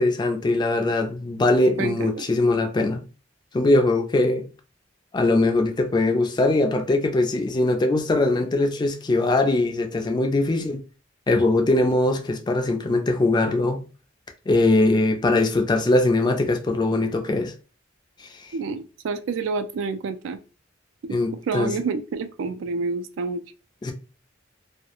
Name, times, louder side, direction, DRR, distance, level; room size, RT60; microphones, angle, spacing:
voice 1, 0.0-3.0 3.5-4.5 5.1-10.8 11.3-13.8 14.5-17.5 18.2-18.3 21.1-21.7 23.8-23.9, left 2 dB, 20° left, 0.3 m, -21 dB
voice 2, 1.8-2.2 18.5-20.4 21.0-21.2 21.5-23.4, right 4 dB, 75° right, 0.3 m, -28 dB
2.3 x 2.0 x 2.9 m
head